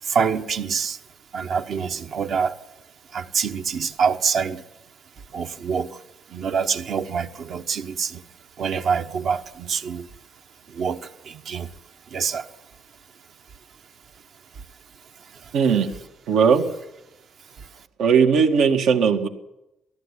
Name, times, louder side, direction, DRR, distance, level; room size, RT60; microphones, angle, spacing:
voice 1, 0.0-1.0 1.3-2.6 3.1-4.6 5.3-6.0 6.3-8.2 8.6-10.1 10.7-11.7 12.1-12.5 15.3-15.5 17.6-17.8, right 6 dB, 55° right, 1.0 m, -26 dB
voice 2, 15.5-15.9 16.3-16.6 18.0-19.3, right 6 dB, 85° right, 2.0 m, -18 dB
19.0 x 14.5 x 10.0 m
cardioid pair, 125°, 0 cm